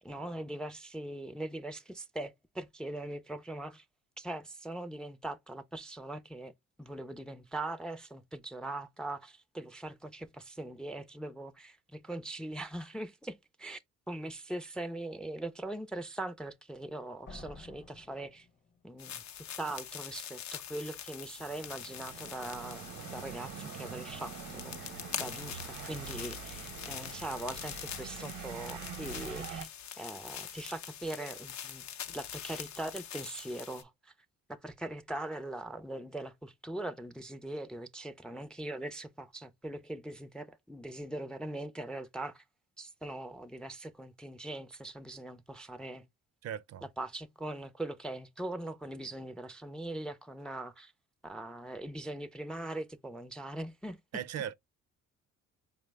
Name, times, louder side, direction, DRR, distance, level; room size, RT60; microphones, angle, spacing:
voice 1, 0.0-3.8 4.2-6.5 6.8-13.8 14.1-18.5 18.8-19.2 19.6-29.7 30.0-34.1 34.5-42.4 42.8-46.1 47.0-50.9 51.2-54.0, right 1 dB, 5° left, 0.3 m, -41 dB
sound 1, 17.3-19.1, left 3 dB, 40° left, 0.8 m, -51 dB
sound 2, 19.0-33.8, left 9 dB, 65° left, 0.6 m, -44 dB
sound 3, 21.4-29.6, right 7 dB, 80° right, 0.8 m, -45 dB
voice 2, 46.4-46.9 54.1-54.5, right 9 dB, 60° right, 0.4 m, -38 dB
4.6 x 2.0 x 3.2 m
cardioid pair, 90°, 30 cm